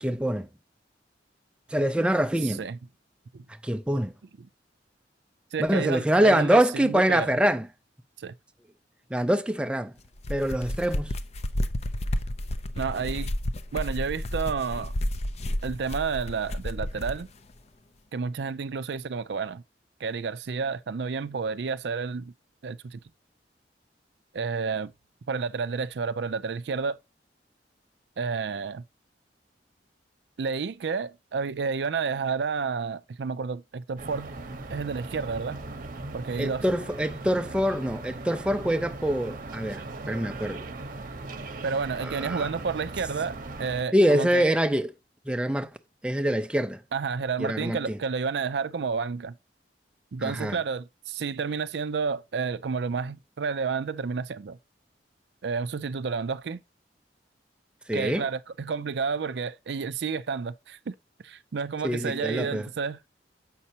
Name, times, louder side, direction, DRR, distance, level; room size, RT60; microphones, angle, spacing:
voice 1, 0.0-0.5 1.7-2.6 3.6-4.1 5.6-7.7 9.1-9.9 10.3-11.1 36.4-40.6 42.0-42.5 43.9-44.9 45.3-45.7 46.0-46.8 47.4-48.0 50.2-50.6 57.9-58.3 61.8-62.7, equal, 5° right, 0.5 m, -25 dB
voice 2, 2.4-2.8 3.3-3.4 4.4-4.5 5.5-7.3 8.2-8.3 12.7-13.3 13.7-14.9 15.6-17.3 18.1-19.6 20.0-22.3 22.6-23.0 24.3-24.9 25.3-27.0 28.2-28.8 30.4-34.3 34.7-35.6 36.1-36.6 41.6-44.4 46.9-49.4 50.1-54.6 55.4-56.6 57.9-60.9 61.2-63.0, right 5 dB, 70° right, 0.4 m, -30 dB
sound 1, 10.1-17.2, left 1 dB, 40° left, 0.6 m, -31 dB
sound 2, 34.0-43.8, right 2 dB, 50° right, 0.9 m, -39 dB
7.4 x 5.5 x 2.8 m
head